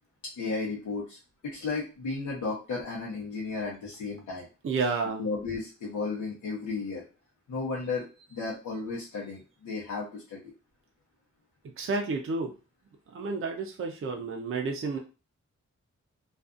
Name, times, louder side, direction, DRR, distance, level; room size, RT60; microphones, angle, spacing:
voice 1, 0.4-1.2 1.4-4.5 5.2-7.0 7.5-10.5, left 4 dB, 90° left, -5 dB, 0.8 m, -34 dB
voice 2, 4.6-5.2 11.8-12.5 13.1-15.0, right 4 dB, 45° right, 2 dB, 0.5 m, -30 dB
2.5 x 2.3 x 2.4 m, 0.32 s
cardioid pair, 70°, 30 cm